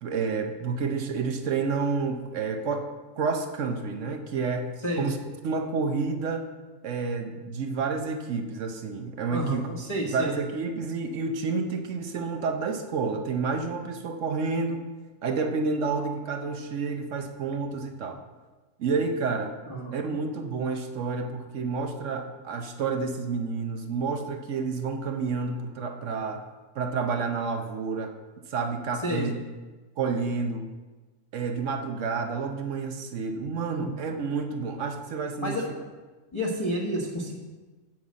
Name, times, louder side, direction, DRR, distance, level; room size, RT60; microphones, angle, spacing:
voice 1, 0.0-2.9 3.2-5.2 5.4-6.5 6.8-9.7 10.1-14.8 15.2-18.2 18.8-19.5 19.9-26.4 26.8-28.1 28.5-29.3 30.0-30.7 31.3-35.6, right 4 dB, 60° right, 6 dB, 1.0 m, -29 dB
voice 2, 9.3-10.3 19.7-20.1 29.0-29.3 33.8-33.9 35.4-35.6 36.3-37.4, equal, 20° left, -5 dB, 1.1 m, -30 dB
7.8 x 5.4 x 7.4 m, 1.3 s
omnidirectional pair, 1.7 m